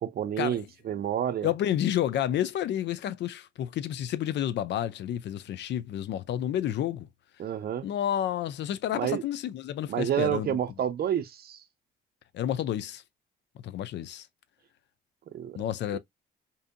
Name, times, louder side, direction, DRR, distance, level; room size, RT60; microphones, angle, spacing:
voice 1, 0.0-1.5 7.4-7.9 8.9-9.2 9.9-11.6 15.3-15.6 15.9-16.0, right 10 dB, 50° right, 0.5 m, -29 dB
voice 2, 1.4-7.1 7.8-10.6 12.3-13.0 13.6-14.3 15.5-16.0, left 11 dB, 65° left, 0.4 m, -30 dB
2.7 x 2.6 x 2.4 m
cardioid pair, 90°, 20 cm